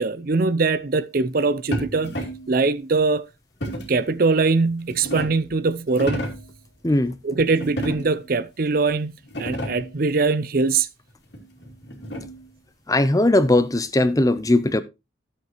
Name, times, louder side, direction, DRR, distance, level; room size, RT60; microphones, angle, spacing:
voice 1, 0.0-2.2 2.5-3.2 3.9-6.2 7.2-9.1 9.4-10.9, right 3 dB, 50° right, 0.5 m, -22 dB
sound 1, 1.7-2.5 3.6-4.0 4.7-5.5 5.9-6.5 7.6-8.3 8.9-9.0 9.2-10.0 11.3-12.5, equal, 65° left, 2.5 m, -31 dB
voice 2, 6.8-7.1 12.9-14.8, left 1 dB, 20° left, 0.6 m, -19 dB
13.0 x 7.8 x 3.0 m
head